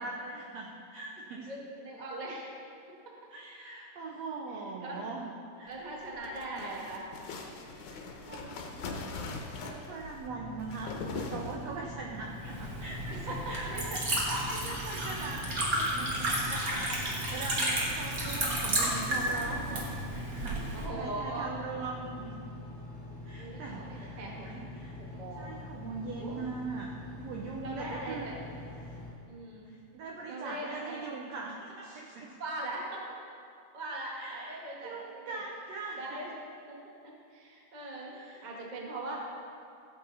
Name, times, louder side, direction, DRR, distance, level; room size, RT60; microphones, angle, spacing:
voice 1, 0.0-1.5 3.3-5.3 5.6-5.8 6.5-6.7 8.2-16.3 16.8-22.4 23.2-25.0 25.4-28.4 29.7-32.4 34.2-36.2 38.1-38.4, right 4 dB, 85° right, -1 dB, 1.5 m, -41 dB
voice 2, 1.5-2.6 3.0-3.3 4.5-5.0 5.7-7.1 7.9-8.1 13.1-13.9 16.5-17.2 19.2-19.8 20.7-21.5 23.4-24.5 25.0-25.5 26.2-26.4 27.6-28.4 29.3-29.6 30.3-31.0 32.4-33.0 33.7-35.4 36.0-36.3 36.7-39.2, right 2 dB, 65° right, -3 dB, 0.4 m, -41 dB
sound 1, 5.9-12.0, left 3 dB, 70° left, 2.2 m, -41 dB
Engine, 10.2-29.1, left 2 dB, 5° left, 1.0 m, -45 dB
Liquid, 12.3-20.8, right 1 dB, 40° right, 1.4 m, -32 dB
16.5 x 7.5 x 4.1 m, 2.4 s
omnidirectional pair, 4.0 m